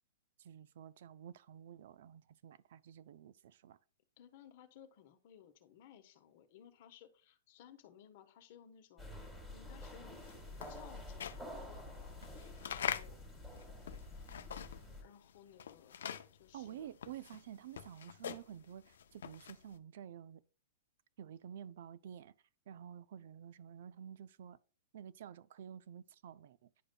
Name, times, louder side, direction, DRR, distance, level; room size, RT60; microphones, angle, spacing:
voice 1, 0.4-3.8 16.5-20.4 21.2-22.3 22.7-24.6 24.9-26.7, right 9 dB, 65° right, 0.4 m, -51 dB
voice 2, 4.2-10.4 10.7-12.2 12.6-13.2 15.0-16.0 16.3-16.9, left 9 dB, 50° left, 1.0 m, -59 dB
sound 1, 9.0-15.0, left 2 dB, 5° right, 1.5 m, -49 dB
sound 2, 10.0-15.0 15.3-19.7, left 8 dB, 80° left, 0.5 m, -44 dB
10.0 x 5.0 x 2.2 m
hypercardioid pair, 145°, 0 cm